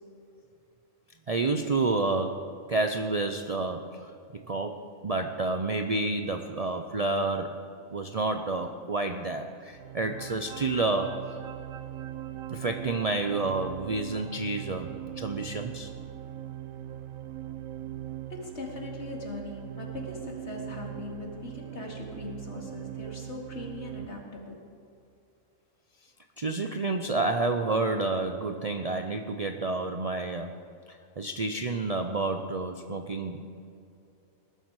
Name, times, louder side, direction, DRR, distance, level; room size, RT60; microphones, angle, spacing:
voice 1, 1.3-7.6 7.9-11.4 12.5-15.9 26.4-30.5 31.2-33.4, right 3 dB, 40° right, 6 dB, 0.5 m, -29 dB
sound 1, 9.7-24.1, right 12 dB, 85° right, 1.1 m, -40 dB
voice 2, 18.3-24.6, left 3 dB, 55° left, 0 dB, 2.5 m, -40 dB
20.0 x 11.5 x 4.8 m, 2.6 s
omnidirectional pair, 1.4 m